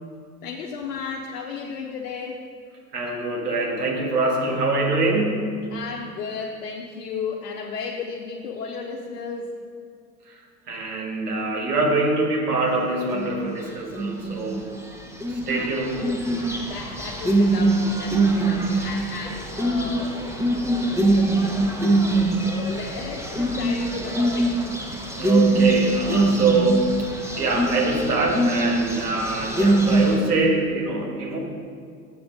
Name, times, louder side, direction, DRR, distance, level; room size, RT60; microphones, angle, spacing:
voice 1, 0.4-2.5 5.7-9.6 15.5-20.2 20.9-21.3 22.3-24.6, left 5 dB, 70° left, -1 dB, 0.8 m, -34 dB
voice 2, 2.9-5.5 10.3-10.4 10.7-14.7 15.3-16.1 25.2-31.4, right 2 dB, 80° right, 0 dB, 1.6 m, -24 dB
sound 1, 13.1-13.5 13.9-14.5 15.0-30.2, right 2 dB, 5° right, 0.9 m, -23 dB
7.0 x 7.0 x 5.1 m, 2.2 s
figure-of-eight pair, 75°, 46 cm